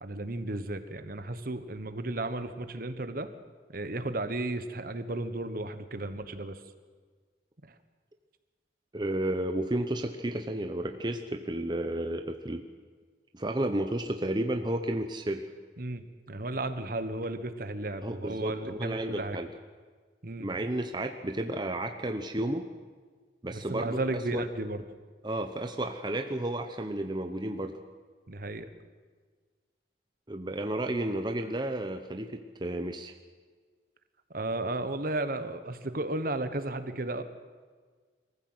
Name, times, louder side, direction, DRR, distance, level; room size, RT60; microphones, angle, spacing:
voice 1, 0.0-3.3 3.7-6.6 7.6-7.7 15.8-19.4 20.2-20.5 23.5-24.8 28.3-28.7 34.3-37.2, right 2 dB, 55° right, 10 dB, 1.3 m, -34 dB
voice 2, 8.9-12.7 13.3-15.5 18.0-19.5 20.4-22.7 23.4-24.0 24.3-24.4 25.2-27.8 30.3-33.1, right 1 dB, 25° right, 5 dB, 0.9 m, -32 dB
23.0 x 15.0 x 7.9 m, 1.5 s
head